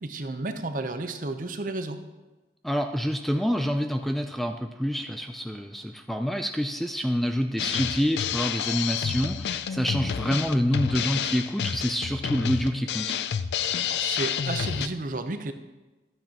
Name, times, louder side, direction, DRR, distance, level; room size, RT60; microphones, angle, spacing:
voice 1, 0.0-2.0 13.9-15.5, right 2 dB, 50° right, 8 dB, 0.7 m, -32 dB
voice 2, 2.6-13.2, equal, ahead, 5 dB, 0.3 m, -27 dB
Drum kit, 7.6-14.9, left 8 dB, 70° left, 0.4 m, -29 dB
12.0 x 9.0 x 2.9 m, 1.1 s
head